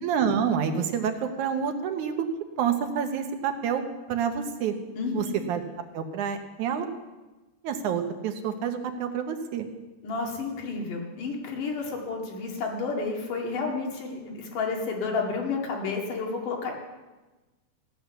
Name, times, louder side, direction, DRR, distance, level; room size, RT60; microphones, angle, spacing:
voice 1, 0.0-2.3 2.6-3.8 4.1-4.7 5.1-5.6 5.9-6.9 7.6-9.7, right 7 dB, 75° right, 6 dB, 2.5 m, -28 dB
voice 2, 5.0-5.3 10.0-16.7, left 4 dB, 80° left, 0 dB, 3.7 m, -31 dB
16.0 x 10.0 x 7.0 m, 1.2 s
omnidirectional pair, 3.6 m